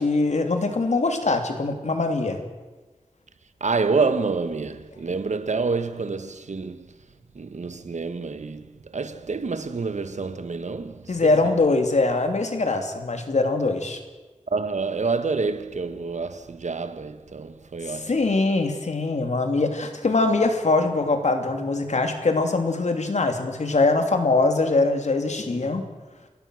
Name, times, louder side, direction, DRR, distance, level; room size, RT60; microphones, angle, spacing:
voice 1, 0.0-2.4 11.1-14.0 17.8-25.8, left 3 dB, 75° left, 2.8 m, -22 dB
voice 2, 3.6-6.9 7.3-11.3 14.5-18.1, right 4 dB, 80° right, 1.3 m, -27 dB
28.5 x 16.0 x 6.4 m
wide cardioid pair, 85°, 12 cm